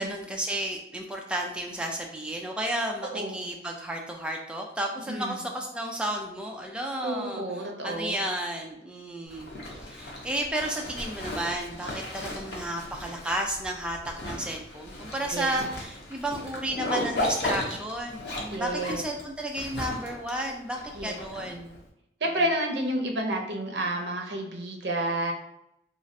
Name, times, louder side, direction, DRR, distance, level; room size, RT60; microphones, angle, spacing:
voice 1, 0.0-9.5 9.8-21.7, right 1 dB, 5° right, 1 dB, 0.3 m, -32 dB
voice 2, 3.1-3.5 5.1-5.4 7.0-8.2 15.3-15.7 18.5-19.0 20.9-21.6 22.2-25.3, right 1 dB, 80° right, 2 dB, 0.6 m, -30 dB
Zipper (clothing), 9.3-21.8, left 1 dB, 80° left, 0.7 m, -36 dB
3.1 x 2.4 x 2.6 m, 0.83 s
head